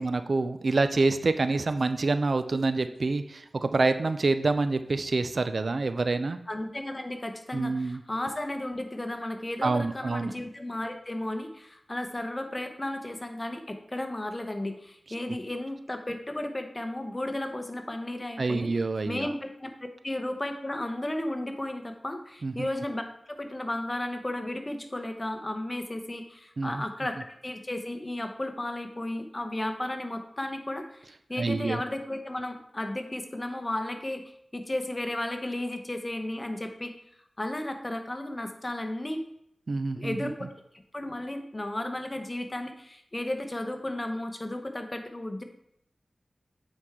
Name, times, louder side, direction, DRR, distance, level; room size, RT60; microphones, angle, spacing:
voice 1, 0.0-6.4 7.5-8.0 9.6-10.3 18.4-19.3 22.4-22.7 26.6-26.8 31.4-31.8 39.7-40.3, right 3 dB, 65° right, 10 dB, 0.4 m, -27 dB
voice 2, 6.5-18.7 19.1-19.7 20.0-23.0 23.3-34.2 34.5-36.9 37.4-39.2 40.0-40.5 40.9-45.4, left 1 dB, 25° left, 6 dB, 0.9 m, -34 dB
8.7 x 4.6 x 3.7 m, 0.75 s
wide cardioid pair, 75°, 0 cm